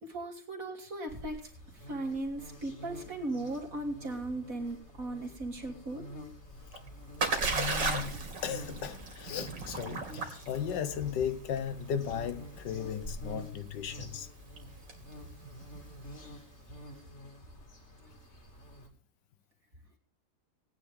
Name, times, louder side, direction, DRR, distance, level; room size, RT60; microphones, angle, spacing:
voice 1, 0.0-6.0, right 2 dB, 50° right, 3.1 m, -37 dB
sound 1, 1.1-18.9, equal, 40° left, 3.0 m, -46 dB
Splash splatter, 6.5-16.4, right 4 dB, 80° right, 3.1 m, -37 dB
voice 2, 7.5-14.3, left 8 dB, 80° left, 1.7 m, -36 dB
18.5 x 9.8 x 3.8 m
omnidirectional pair, 1.9 m